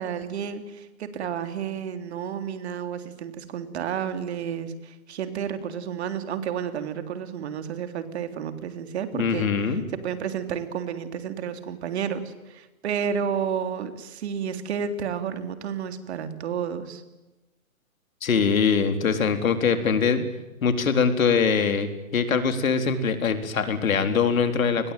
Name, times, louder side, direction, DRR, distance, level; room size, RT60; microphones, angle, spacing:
voice 1, 0.0-9.8 10.0-17.0, right 7 dB, 50° right, 9 dB, 3.5 m, -31 dB
voice 2, 9.1-9.8 18.2-20.2 20.6-24.9, left 6 dB, 75° left, 8 dB, 4.2 m, -23 dB
29.5 x 21.0 x 9.3 m, 1.1 s
hypercardioid pair, 150°, 41 cm